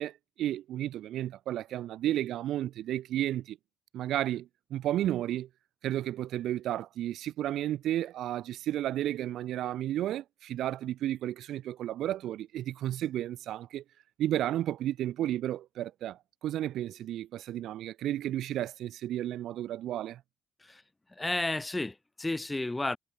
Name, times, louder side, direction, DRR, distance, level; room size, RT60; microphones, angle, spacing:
voice 1, 0.0-3.6 3.9-5.5 5.8-13.8 14.2-20.2, right 12 dB, 80° right, 2.1 m, -32 dB
voice 2, 21.1-23.0, left 2 dB, 15° left, 0.8 m, -32 dB
cardioid pair, 90°, 0 cm